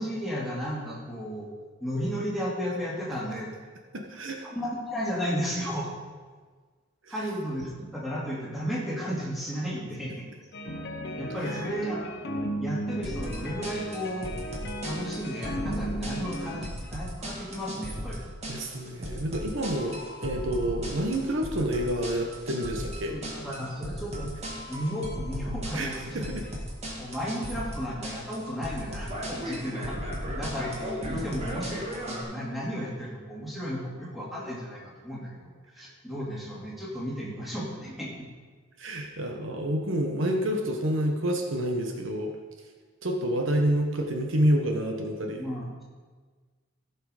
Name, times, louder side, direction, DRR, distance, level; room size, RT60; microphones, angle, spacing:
voice 1, 0.0-1.5 1.8-3.5 4.4-6.0 7.1-10.3 11.2-12.1 12.6-14.3 14.8-18.3 23.1-24.3 24.7-26.3 27.0-30.0 30.3-38.3 45.4-45.8, equal, ahead, -6 dB, 2.4 m, -34 dB
voice 2, 3.9-4.4 7.1-7.2 11.4-11.6 18.5-23.2 25.7-25.9 26.1-26.5 38.8-42.3 43.0-45.4, right 1 dB, 70° right, 2 dB, 1.1 m, -28 dB
sound 1, 10.5-16.7, equal, 50° left, 1.1 m, -35 dB
sound 2, 13.0-32.2, equal, 30° right, 1.8 m, -36 dB
15.5 x 6.0 x 4.9 m, 1.5 s
head